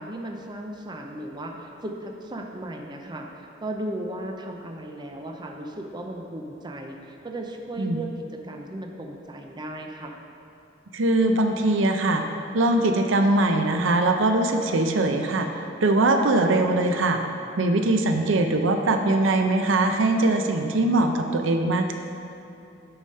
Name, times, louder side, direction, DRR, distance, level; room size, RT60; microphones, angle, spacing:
voice 1, 0.0-8.1 8.4-10.1, right 1 dB, 25° right, 2 dB, 0.6 m, -36 dB
voice 2, 10.9-12.2 12.5-17.2 17.6-21.9, right 2 dB, 75° right, 5 dB, 0.6 m, -21 dB
8.8 x 4.9 x 5.5 m, 2.7 s
head